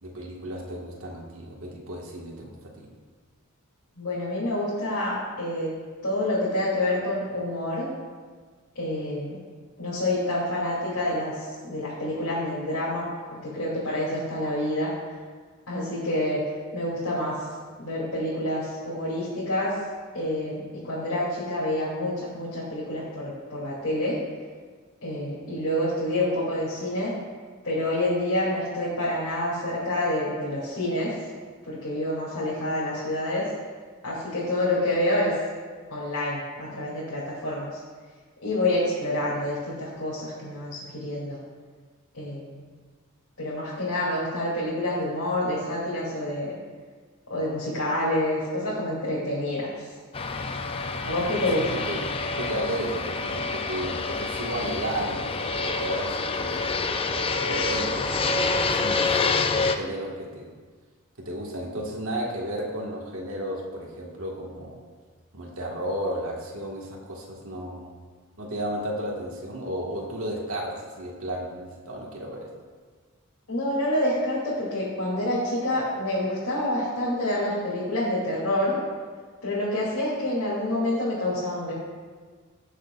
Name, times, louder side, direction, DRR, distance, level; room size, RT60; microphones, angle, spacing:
voice 1, 0.0-2.9 51.2-56.7 57.5-59.3 59.5-60.5 61.2-64.8 65.3-67.9 68.4-72.5, right 1 dB, 70° right, -1 dB, 1.7 m, -33 dB
voice 2, 4.0-5.7 6.0-7.9 8.7-9.3 9.8-14.9 15.7-16.4 16.7-17.4 17.8-19.7 20.1-24.2 25.0-27.1 27.6-31.1 31.7-33.4 34.0-35.3 35.9-37.8 38.4-41.4 42.1-42.6 43.4-46.5 47.3-49.9 51.0-51.8 73.5-78.8 79.4-81.7, left 1 dB, 90° left, -9 dB, 2.8 m, -27 dB
Fixed-wing aircraft airplane, 50.1-59.7, left 3 dB, 25° left, 0.4 m, -27 dB
18.0 x 6.7 x 2.5 m, 1.5 s
head